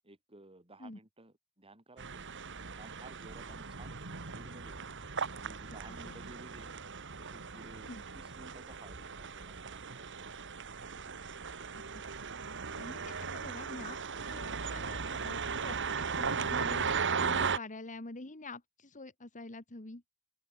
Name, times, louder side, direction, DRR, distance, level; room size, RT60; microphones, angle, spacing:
voice 1, 0.0-2.3 2.8-4.8 5.3-6.7 7.2-10.3, right 2 dB, 25° right, 4.8 m, -55 dB
sound 1, 2.0-17.6, right 5 dB, 55° right, 2.6 m, -37 dB
voice 2, 12.8-20.0, left 2 dB, 35° left, 1.8 m, -47 dB
open air
head